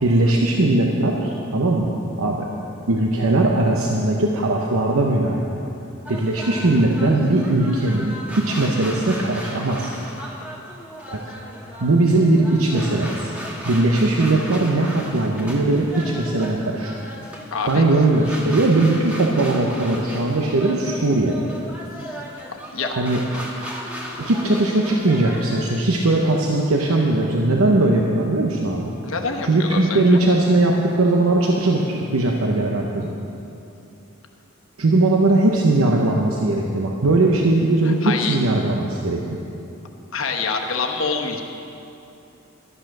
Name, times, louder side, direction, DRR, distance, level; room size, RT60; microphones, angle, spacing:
voice 1, 0.0-1.9 2.2-2.4 2.9-5.5 6.1-9.9 11.1-11.2 11.8-13.3 13.6-16.9 17.7-21.5 22.9-23.2 24.2-28.9 29.4-33.1 34.8-39.2, right 2 dB, 90° right, -1 dB, 0.9 m, -19 dB
sound 1, 6.0-25.8, equal, 5° right, 1.4 m, -36 dB
voice 2, 17.5-17.8 22.0-22.2 22.5-23.0 29.0-30.2 37.8-38.4 40.1-41.4, left 4 dB, 70° left, 3 dB, 1.1 m, -26 dB
12.5 x 9.1 x 6.0 m, 2.7 s
head